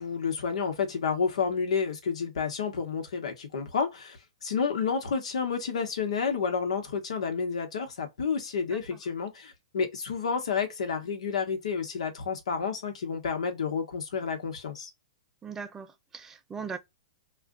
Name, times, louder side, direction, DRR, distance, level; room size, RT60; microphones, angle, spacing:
voice 1, 0.0-14.9, left 5 dB, 80° left, 1.2 m, -30 dB
voice 2, 15.4-16.8, right 6 dB, 10° right, 0.5 m, -39 dB
2.5 x 2.2 x 3.7 m
hypercardioid pair, 150°, 3 cm